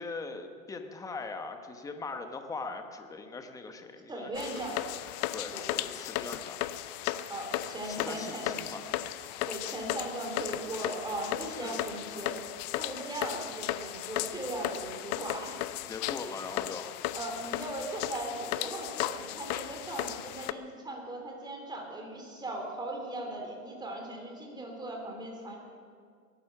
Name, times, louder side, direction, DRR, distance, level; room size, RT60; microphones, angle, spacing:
voice 1, 0.0-4.6 5.3-6.6 7.8-8.9 11.6-11.8 15.9-16.9, left 3 dB, 10° left, 6 dB, 1.0 m, -40 dB
voice 2, 4.1-4.8 5.5-5.7 7.3-8.6 9.5-12.4 12.8-15.5 17.1-25.6, right 1 dB, 10° right, 0 dB, 3.5 m, -38 dB
sound 1, 4.3-20.5, left 14 dB, 30° left, 0.4 m, -36 dB
20.0 x 11.5 x 6.0 m, 2.1 s
hypercardioid pair, 130°, 42 cm